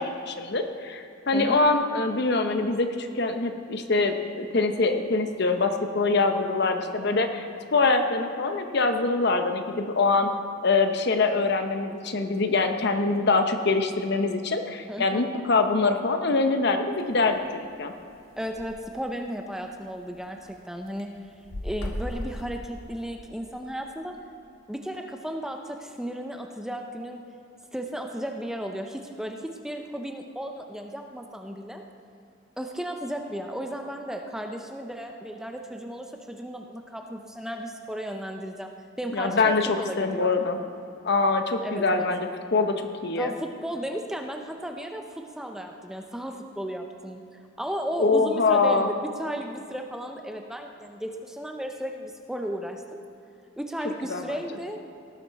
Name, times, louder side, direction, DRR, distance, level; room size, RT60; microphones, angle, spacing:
voice 1, 0.0-10.3 10.6-17.9 39.1-40.6 41.0-43.3 48.0-48.9 54.1-54.4, left 3 dB, 55° left, 7 dB, 0.8 m, -24 dB
voice 2, 1.3-1.6 14.9-15.3 18.4-21.1 21.6-24.2 24.7-27.2 27.7-31.8 32.6-38.7 39.0-40.4 41.6-42.1 43.2-53.0 53.6-54.8, equal, ahead, 3 dB, 0.5 m, -34 dB
sound 1, 17.0-17.2 17.7-17.8 18.0-18.1 18.3-18.7 19.3-19.4 19.8-20.5 20.9-23.1, left 1 dB, 80° left, 1.4 m, -35 dB
17.5 x 7.2 x 4.6 m, 2.7 s
head